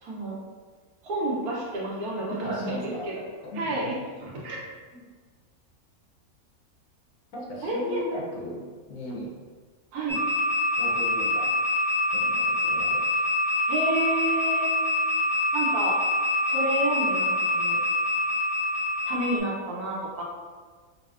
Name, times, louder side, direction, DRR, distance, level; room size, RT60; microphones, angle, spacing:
voice 1, 0.0-0.3 1.0-3.1 3.5-3.9 4.2-4.6 7.6-8.0 9.9-10.2 13.7-14.7 15.5-15.9 16.5-17.8 19.1-20.2, right 2 dB, 85° right, -4 dB, 1.3 m, -30 dB
voice 2, 2.4-3.2 3.5-4.0 7.3-9.4 10.8-11.6 12.0-13.3, left 1 dB, 70° left, -3 dB, 1.1 m, -37 dB
sound 1, 10.1-19.4, left 2 dB, 65° right, 1.2 m, -25 dB
5.2 x 2.0 x 2.4 m, 1.5 s
omnidirectional pair, 1.6 m